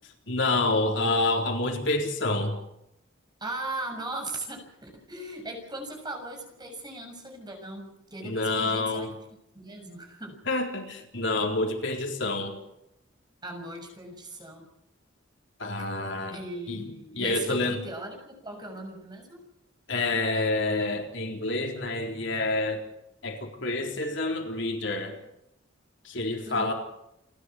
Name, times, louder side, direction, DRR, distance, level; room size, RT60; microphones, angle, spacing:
voice 1, 0.3-2.6 8.2-9.1 10.5-12.6 15.6-16.4 16.7-16.9 17.2-17.8 19.9-22.8 23.2-25.1 26.0-26.7, left 2 dB, 70° left, 3 dB, 4.1 m, -28 dB
voice 2, 3.4-9.1 9.5-10.4 13.4-14.7 16.3-19.4 26.4-26.7, right 2 dB, 20° right, 3 dB, 6.7 m, -38 dB
29.5 x 12.5 x 7.9 m, 0.80 s
head